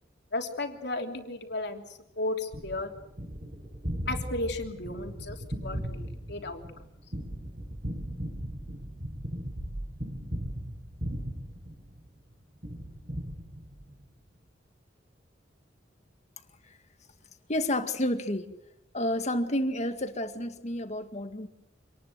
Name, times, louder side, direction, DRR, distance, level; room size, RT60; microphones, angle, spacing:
voice 1, 0.3-2.9 4.1-6.6, left 2 dB, 65° left, 3 dB, 3.2 m, -34 dB
Gunshot gunfire, 2.5-12.2 12.6-14.0, equal, 45° right, 6.9 m, -37 dB
voice 2, 17.5-18.5 18.9-21.5, left 1 dB, 40° left, 7 dB, 2.0 m, -30 dB
26.5 x 19.5 x 7.8 m, 0.85 s
head